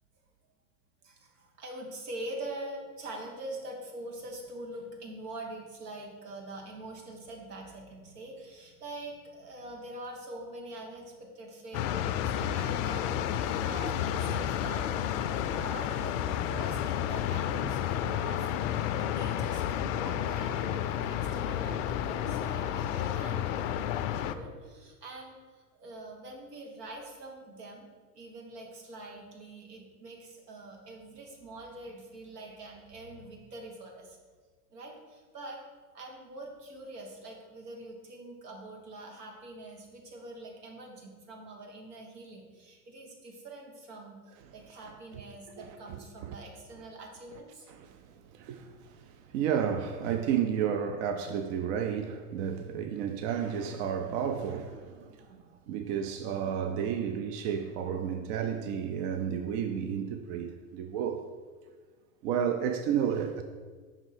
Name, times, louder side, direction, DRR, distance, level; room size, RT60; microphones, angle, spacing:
voice 1, 1.0-27.9 28.1-34.2 34.7-35.6 35.9-47.7, right 2 dB, 80° right, 1 dB, 1.5 m, -44 dB
sound 1, 11.7-24.3, left 10 dB, 55° left, 0.5 m, -31 dB
voice 2, 45.6-46.4 47.7-61.3 62.2-63.4, right 8 dB, 50° right, 7 dB, 0.5 m, -32 dB
5.5 x 3.6 x 4.9 m, 1.5 s
hypercardioid pair, 95°, 46 cm